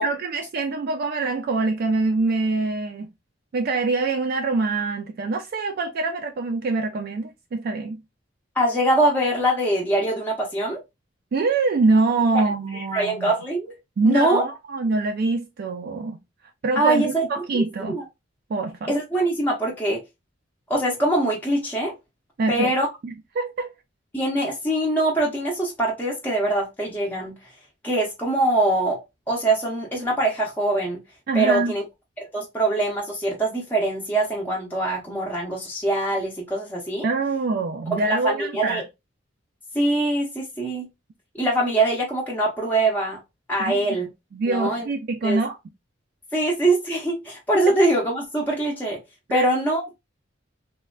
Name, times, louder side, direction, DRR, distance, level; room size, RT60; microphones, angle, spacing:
voice 1, 0.0-3.1 3.5-8.0 11.3-13.3 14.0-16.2 16.6-18.0 18.5-18.9 22.4-22.7 23.0-23.7 31.3-31.7 37.0-38.8 43.6-44.0 44.3-45.6 49.3-49.5, right 3 dB, 50° right, 0.3 m, -24 dB
voice 2, 8.6-10.8 12.3-12.4 12.7-13.7 14.0-14.4 16.8-17.2 17.5-18.0 18.9-20.0 20.7-21.9 22.5-22.9 24.1-27.3 27.8-29.0 29.3-31.0 31.3-31.8 32.2-37.1 37.9-38.8 39.7-40.9 41.3-43.2 43.5-44.1 44.5-44.9 45.2-45.4 46.3-49.0 49.3-50.0, right 1 dB, 10° left, 0.6 m, -23 dB
3.2 x 2.1 x 2.2 m
head